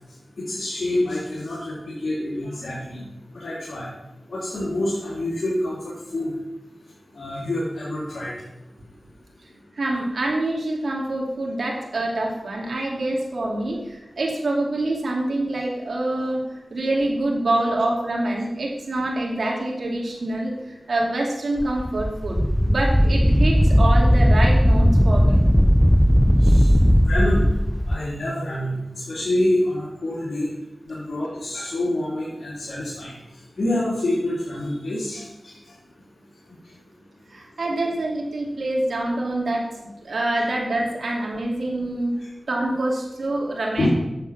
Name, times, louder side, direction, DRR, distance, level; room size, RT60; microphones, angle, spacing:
voice 1, 0.4-3.0 3.3-3.9 4.3-6.3 7.1-8.3 26.4-26.7 27.0-27.5 27.9-28.8 29.1-30.5 30.9-33.1 33.6-35.5 43.8-43.9, left 1 dB, 70° left, -8 dB, 3.4 m, -26 dB
voice 2, 9.7-16.4 16.7-25.4 37.3-42.1 42.5-43.9, right 1 dB, 75° right, -2 dB, 2.6 m, -26 dB
Wind, 21.6-28.0, equal, 5° left, 0.3 m, -17 dB
9.0 x 7.2 x 6.1 m, 0.95 s
cardioid pair, 50°, 0 cm